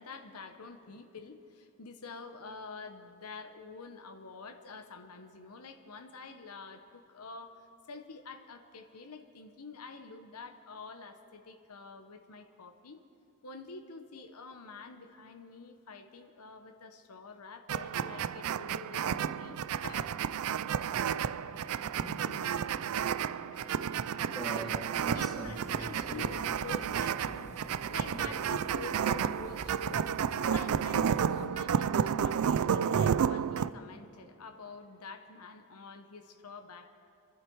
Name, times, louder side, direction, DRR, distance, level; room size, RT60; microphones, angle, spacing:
voice 1, 0.0-13.0 13.4-20.1 23.5-23.8 25.1-36.9, left 4 dB, 85° left, 6 dB, 1.0 m, -48 dB
sound 1, 17.7-33.7, right 8 dB, 75° right, 0.4 m, -31 dB
sound 2, 20.9-33.1, left 2 dB, 45° left, 1.1 m, -55 dB
voice 2, 21.9-22.5 24.3-26.5 28.1-28.4, equal, ahead, -3 dB, 2.5 m, -43 dB
sound 3, 24.9-31.5, right 1 dB, 30° right, 0.9 m, -51 dB
26.5 x 11.5 x 4.7 m, 2.8 s
head